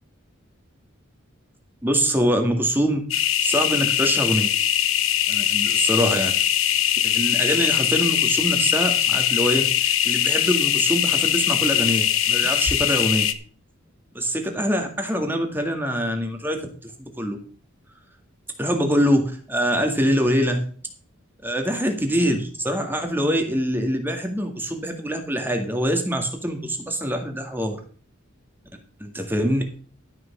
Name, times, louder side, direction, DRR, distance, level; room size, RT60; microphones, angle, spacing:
voice 1, 1.8-4.5 5.3-6.3 7.0-9.7 10.0-13.3 14.1-16.7 17.0-17.4 18.6-20.6 21.4-27.8 29.0-29.6, equal, 10° right, 4 dB, 2.0 m, -24 dB
sound 1, 3.1-13.3, left 11 dB, 70° left, 1.0 m, -21 dB
12.5 x 6.3 x 6.0 m, 0.43 s
head